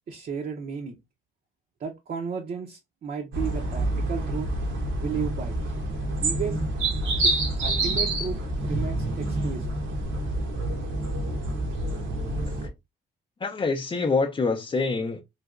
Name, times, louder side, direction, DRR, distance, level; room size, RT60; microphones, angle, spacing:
voice 1, 0.1-1.0 1.8-4.5 5.0-5.6 6.2-6.6 7.2-9.8, right 6 dB, 50° right, 0.7 m, -34 dB
sound 1, 3.3-12.7, right 1 dB, 75° right, 1.0 m, -27 dB
voice 2, 13.4-15.2, left 4 dB, 25° left, 0.5 m, -26 dB
3.2 x 2.8 x 2.4 m
cardioid pair, 90°, 20 cm